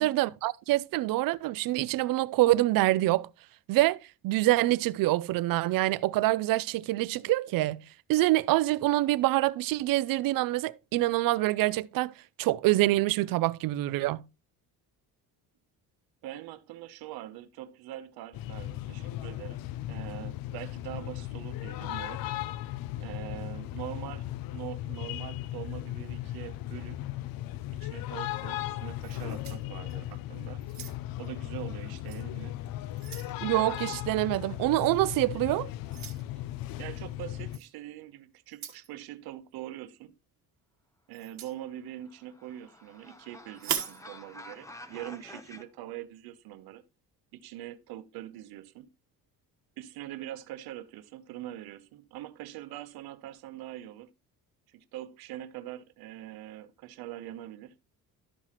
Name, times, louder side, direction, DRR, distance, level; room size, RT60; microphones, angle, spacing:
voice 1, 0.0-3.3 3.7-4.0 4.2-7.8 8.1-14.2 33.4-35.7, right 17 dB, 65° right, 0.5 m, -26 dB
voice 2, 16.2-19.6 19.9-22.2 23.0-27.0 27.7-30.7 31.2-32.6 36.8-40.1 41.1-46.8 47.3-48.9 49.8-54.1 54.7-57.7, right 13 dB, 85° right, 0.9 m, -43 dB
sound 1, 18.3-37.6, left 14 dB, 70° left, 0.5 m, -37 dB
sound 2, 29.0-30.2 30.6-31.3 32.1-32.2 32.7-33.4 34.8-35.0 35.9-36.2 37.5-37.7 38.5-38.9 41.1-41.6 43.5-44.0, right 10 dB, 50° right, 1.3 m, -38 dB
sound 3, 41.8-45.6, left 1 dB, 10° left, 0.8 m, -49 dB
12.5 x 5.7 x 3.0 m
cardioid pair, 160°, 36 cm